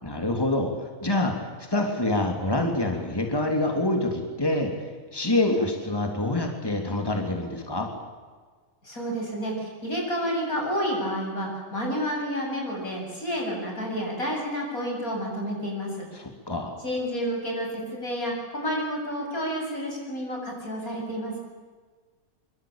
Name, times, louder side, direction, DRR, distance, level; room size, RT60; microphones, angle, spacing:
voice 1, 0.0-7.9 16.1-16.8, left 2 dB, 15° left, 3 dB, 3.3 m, -26 dB
voice 2, 8.8-16.1 16.8-21.4, equal, 85° left, 0 dB, 8.4 m, -30 dB
25.0 x 24.5 x 9.0 m, 1.5 s
omnidirectional pair, 1.5 m